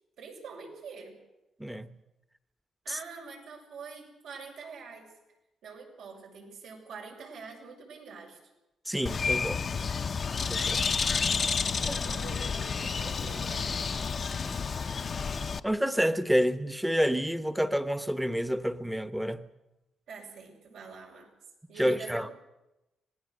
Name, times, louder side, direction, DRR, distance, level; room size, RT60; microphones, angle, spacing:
voice 1, 0.2-1.2 2.8-5.1 5.6-8.4 11.7-14.2 20.1-21.3 21.7-22.3, right 5 dB, 85° right, 6.7 m, -45 dB
voice 2, 1.6-1.9 2.9-3.0 8.9-9.6 10.5-10.9 11.9-12.0 14.4-14.6 15.6-19.5 21.8-22.3, equal, 5° right, 1.0 m, -29 dB
Bird, 9.1-15.6, left 5 dB, 40° left, 0.7 m, -30 dB
26.0 x 19.0 x 6.5 m
cardioid pair, 125°, 0 cm